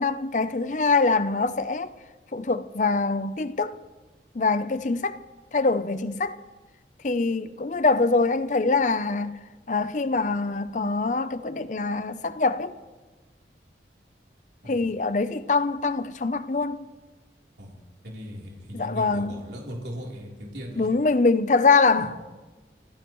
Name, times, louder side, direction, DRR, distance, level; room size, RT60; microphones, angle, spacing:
voice 1, 0.0-1.9 2.3-3.8 4.3-5.2 5.5-6.4 7.0-12.7 14.7-16.8 18.7-19.3 20.8-22.2, left 3 dB, 45° left, 0.6 m, -24 dB
voice 2, 18.0-20.9 22.0-22.1, equal, 75° right, 3.6 m, -38 dB
27.5 x 14.5 x 3.1 m
head